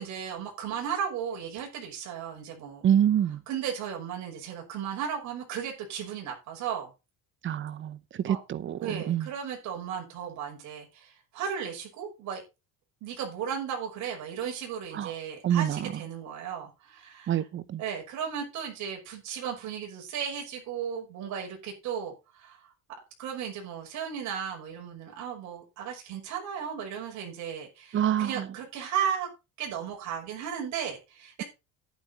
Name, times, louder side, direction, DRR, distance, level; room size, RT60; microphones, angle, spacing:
voice 1, 0.0-2.8 3.5-6.9 8.3-8.4 8.8-12.4 13.0-17.5 17.8-22.7 23.2-29.3 29.6-31.4, right 8 dB, 55° right, 6.0 m, -35 dB
voice 2, 2.8-3.4 7.4-8.0 8.2-9.3 15.0-15.1 15.4-15.8 17.3-17.8 27.9-28.3, right 10 dB, 35° right, 0.9 m, -26 dB
11.5 x 10.0 x 4.2 m
cardioid pair, 135°, 34 cm